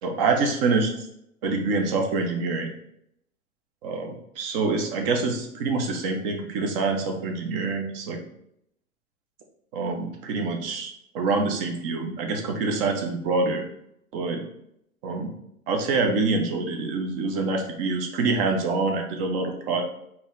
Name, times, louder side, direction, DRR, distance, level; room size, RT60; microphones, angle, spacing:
voice 1, 0.0-1.1 1.4-2.7 3.8-8.2 9.7-13.6 14.1-14.4 15.0-15.3 15.7-19.8, right 3 dB, 40° right, 3 dB, 1.0 m, -26 dB
4.1 x 2.9 x 3.9 m, 0.75 s
figure-of-eight pair, 100°, 43 cm